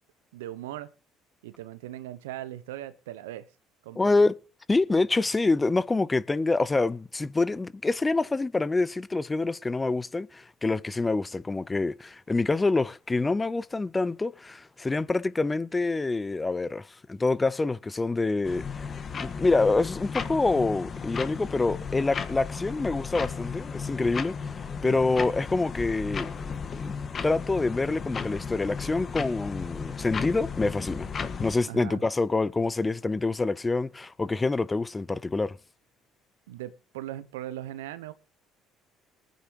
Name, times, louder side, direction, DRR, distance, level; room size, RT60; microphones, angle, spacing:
voice 1, 0.3-0.9 1.4-3.5 3.8-4.1 24.8-25.1 31.7-32.0 36.5-38.1, right 13 dB, 80° right, 0.9 m, -39 dB
voice 2, 4.0-4.4 4.7-18.9 19.2-24.3 24.8-26.3 26.8-26.9 27.2-31.1 31.4-35.6, left 3 dB, 20° left, 0.6 m, -26 dB
sound 1, 18.4-31.6, left 5 dB, 40° left, 1.5 m, -35 dB
24.0 x 9.4 x 3.0 m
hypercardioid pair, 60°, 0 cm